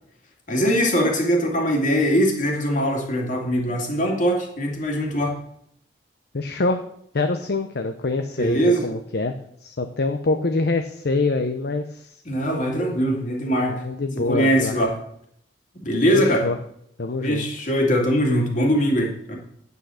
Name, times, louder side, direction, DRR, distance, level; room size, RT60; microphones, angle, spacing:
voice 1, 0.5-5.4 8.4-8.8 12.2-13.8 14.1-14.9 15.8-16.5 17.2-19.4, equal, 45° left, 1 dB, 2.6 m, -21 dB
voice 2, 6.3-6.8 7.1-9.3 9.6-12.2 13.6-14.8 16.1-16.6 17.0-17.5, left 3 dB, 60° left, 7 dB, 0.7 m, -25 dB
9.0 x 8.3 x 6.4 m, 0.71 s
head